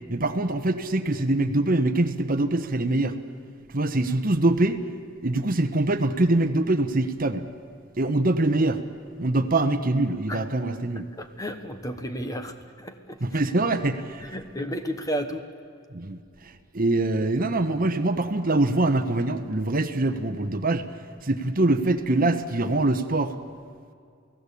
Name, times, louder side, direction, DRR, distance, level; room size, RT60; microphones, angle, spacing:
voice 1, 0.1-3.2 3.7-4.8 5.2-7.4 8.0-8.8 9.2-11.0 13.2-14.2 15.9-20.8 21.2-23.3, right 2 dB, 40° right, 9 dB, 1.1 m, -24 dB
voice 2, 11.2-13.4 14.2-15.4, equal, 15° left, 8 dB, 1.3 m, -33 dB
29.0 x 18.0 x 8.5 m, 2.3 s
head